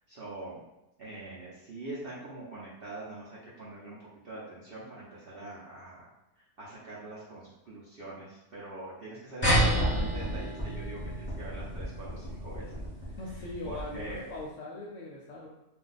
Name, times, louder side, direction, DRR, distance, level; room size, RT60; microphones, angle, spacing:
voice 1, 0.1-0.6 1.0-6.1 6.4-12.7 13.6-14.2, right 2 dB, 60° right, -8 dB, 0.6 m, -43 dB
sound 1, 9.4-14.3, right 1 dB, 15° left, 0.4 m, -30 dB
voice 2, 13.2-15.5, left 2 dB, 65° left, -3 dB, 0.8 m, -40 dB
2.6 x 2.2 x 3.8 m, 0.95 s
omnidirectional pair, 1.7 m